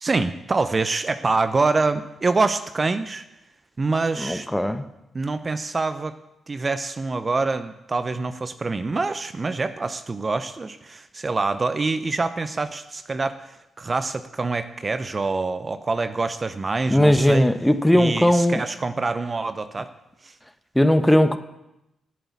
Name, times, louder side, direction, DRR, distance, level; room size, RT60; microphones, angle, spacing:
voice 1, 0.0-3.2 3.8-4.5 5.1-6.2 6.5-17.5 17.9-19.9 20.2-20.3, right 3 dB, 35° right, 11 dB, 0.9 m, -25 dB
voice 2, 4.2-4.8 16.9-18.6 20.7-21.4, left 1 dB, 5° left, 10 dB, 1.2 m, -18 dB
12.0 x 8.1 x 8.6 m, 0.90 s
hypercardioid pair, 45°, 0 cm